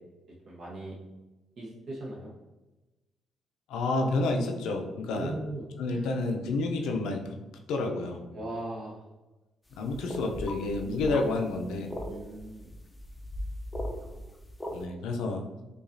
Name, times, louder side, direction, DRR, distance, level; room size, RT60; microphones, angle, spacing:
voice 1, 0.5-0.9 1.6-2.3 5.1-6.1 6.8-7.0 8.3-9.0 10.8-11.1 12.0-12.7 13.8-14.3, right 1 dB, 60° right, -4 dB, 0.8 m, -39 dB
voice 2, 3.7-5.3 5.8-7.2 7.7-8.2 9.8-11.9 14.7-15.4, left 3 dB, 85° left, 3 dB, 0.4 m, -29 dB
sound 1, 9.7-14.8, equal, 15° left, 0.5 m, -38 dB
4.9 x 2.3 x 2.6 m, 1.1 s
cardioid pair, 90°, 0 cm